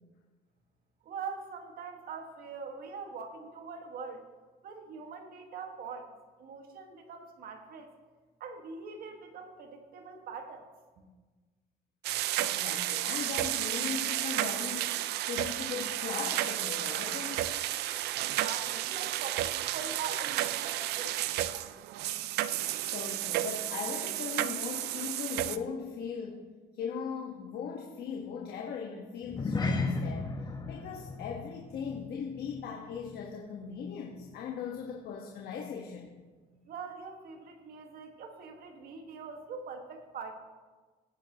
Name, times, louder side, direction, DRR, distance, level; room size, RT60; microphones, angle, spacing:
voice 1, 1.0-4.2 4.6-6.1 6.4-7.9 8.4-10.7 11.0-11.1 18.2-21.2 21.6-21.7 36.6-40.3, right 5 dB, 60° right, 4 dB, 1.7 m, -43 dB
sound 1, 12.0-25.6, right 14 dB, 80° right, 0.5 m, -32 dB
voice 2, 12.4-17.6 22.8-26.4 26.7-30.3 30.7-36.1, left 6 dB, 70° left, 0 dB, 1.4 m, -39 dB
sound 2, 29.2-33.9 34.1-34.4 34.9-35.0, left 3 dB, 25° left, 1.2 m, -36 dB
17.5 x 8.9 x 3.0 m, 1.3 s
cardioid pair, 110°, 17 cm